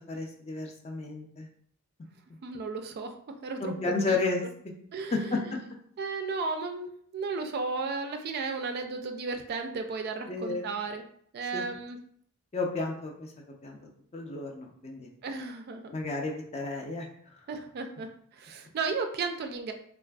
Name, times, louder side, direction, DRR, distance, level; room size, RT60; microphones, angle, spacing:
voice 1, 0.0-1.5 3.6-4.4 5.1-5.4 10.3-10.7 11.5-11.6 12.5-15.1 15.9-17.1, left 3 dB, 30° left, 1 dB, 0.4 m, -32 dB
voice 2, 2.4-3.2 3.4-3.7 4.1-4.2 4.9-5.4 6.0-11.0 11.3-12.0 15.2-15.9 17.5-19.7, right 4 dB, 45° right, 6 dB, 0.3 m, -34 dB
3.2 x 2.4 x 2.2 m, 0.63 s
head